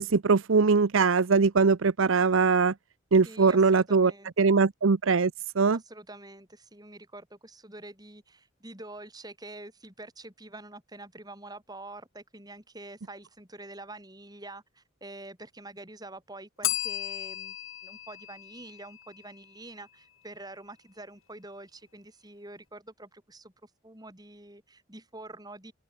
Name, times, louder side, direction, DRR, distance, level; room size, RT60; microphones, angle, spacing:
voice 1, 0.0-2.7 3.1-4.1 4.4-5.3 5.6-5.8, right 4 dB, 80° right, 0.7 m, -21 dB
voice 2, 3.2-4.5 5.7-17.6 17.8-25.7, right 2 dB, 20° right, 7.0 m, -46 dB
Bell, 16.6-19.4, left 14 dB, 85° left, 4.0 m, -35 dB
open air
head